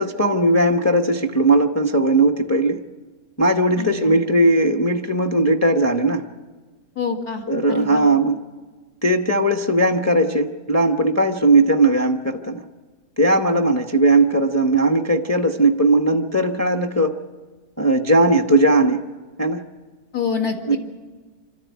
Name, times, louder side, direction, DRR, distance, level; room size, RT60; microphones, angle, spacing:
voice 1, 0.0-2.8 3.4-6.2 7.5-8.4 9.0-12.6 13.2-17.2 17.8-19.0 19.4-19.6 20.7-20.8, right 2 dB, 15° left, 6 dB, 0.7 m, -18 dB
voice 2, 3.8-4.2 7.0-8.1 20.1-20.8, left 6 dB, 70° left, 1 dB, 2.8 m, -27 dB
25.5 x 13.5 x 9.4 m, 1.3 s
omnidirectional pair, 1.7 m